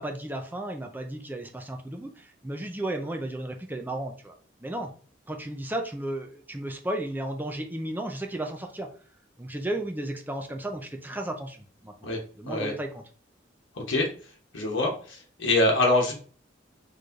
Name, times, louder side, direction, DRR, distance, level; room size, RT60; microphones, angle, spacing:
voice 1, 0.0-4.4 4.6-4.9 5.3-8.9 9.4-11.9 12.4-13.0, right 1 dB, 10° right, 3 dB, 0.5 m, -34 dB
voice 2, 13.8-14.1 14.5-16.1, left 2 dB, 80° left, -1 dB, 1.1 m, -24 dB
4.3 x 3.2 x 2.5 m, 0.42 s
head